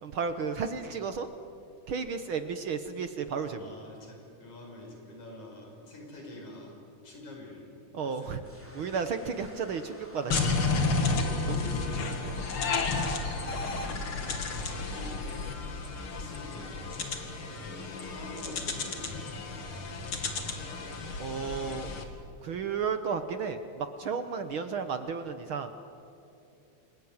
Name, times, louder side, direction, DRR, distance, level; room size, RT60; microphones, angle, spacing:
voice 1, 0.0-1.3 1.9-3.7 7.9-8.4 8.7-10.5 11.5-11.6 12.2-12.4 17.5-17.6 21.2-21.9 22.4-25.7, right 6 dB, 60° right, 9 dB, 1.4 m, -33 dB
voice 2, 3.6-7.7 8.0-8.6 11.1-12.0 13.8-15.1 16.1-17.2 17.5-19.3 22.0-22.1, left 1 dB, 70° left, 1 dB, 6.1 m, -47 dB
sound 1, 8.4-12.0, equal, 5° left, 2.9 m, -50 dB
sound 2, 10.3-22.0, left 3 dB, 45° left, 2.9 m, -32 dB
28.5 x 21.5 x 9.7 m, 2.8 s
omnidirectional pair, 3.5 m